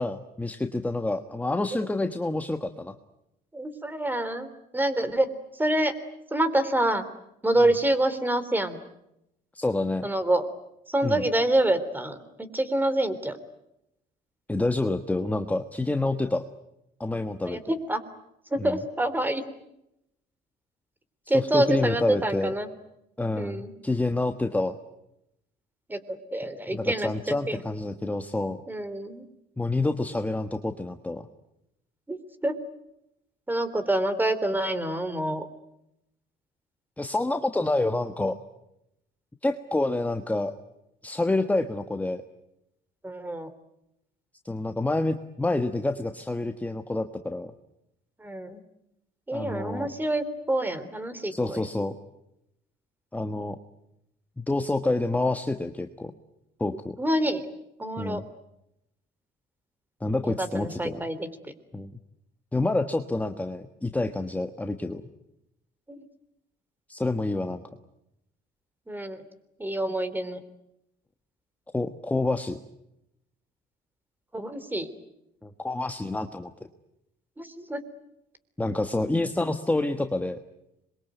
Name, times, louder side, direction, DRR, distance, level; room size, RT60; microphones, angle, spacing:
voice 1, 0.0-2.9 9.5-10.0 11.0-11.2 14.5-16.4 17.0-17.6 18.6-18.8 21.3-22.5 23.2-24.8 26.7-28.6 29.6-31.3 37.0-38.4 39.4-40.5 41.0-42.2 44.4-47.5 49.3-49.9 51.3-51.9 53.1-53.6 54.4-56.1 56.6-57.0 58.0-58.2 60.0-61.0 61.7-61.9 62.5-65.0 66.9-67.6 71.7-72.6 75.4-76.5 78.6-80.4, left 2 dB, 10° left, 7 dB, 1.4 m, -28 dB
voice 2, 3.5-5.3 5.5-5.9 6.3-7.1 7.4-8.8 10.0-10.5 10.9-13.4 17.5-18.0 18.5-19.4 21.3-22.7 23.4-23.7 25.9-27.6 28.7-29.2 32.1-32.5 33.5-35.5 43.0-43.5 48.2-48.6 49.3-51.6 57.0-57.4 57.8-58.2 60.2-61.5 65.9-66.0 68.9-69.2 69.6-70.4 74.3-74.9 77.4-77.8, right 1 dB, 10° right, 13 dB, 3.3 m, -27 dB
26.5 x 22.5 x 9.2 m, 0.85 s
cardioid pair, 110°, 17 cm